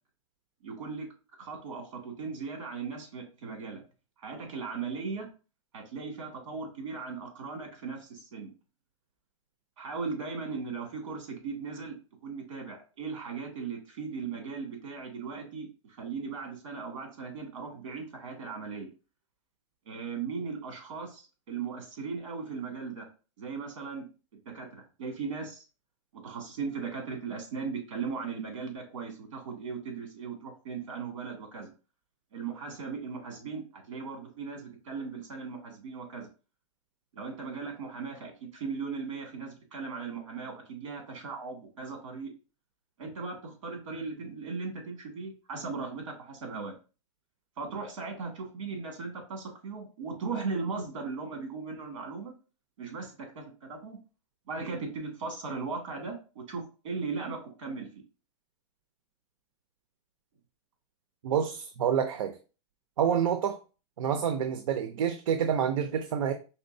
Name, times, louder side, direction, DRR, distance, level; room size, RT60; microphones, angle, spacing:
voice 1, 0.6-1.1 1.4-3.8 4.2-5.3 5.7-8.5 9.8-12.0 12.2-15.7 16.0-18.9 19.9-23.1 23.4-24.1 24.5-25.6 26.1-31.7 32.3-36.3 37.1-42.3 43.0-46.7 47.6-52.3 52.8-54.0 54.5-57.9, right 5 dB, 70° right, 2 dB, 2.1 m, -38 dB
voice 2, 61.2-62.4 63.0-63.6 64.0-66.3, right 8 dB, 90° right, 7 dB, 0.6 m, -28 dB
4.3 x 3.6 x 2.6 m, 0.34 s
supercardioid pair, 170°, 16 cm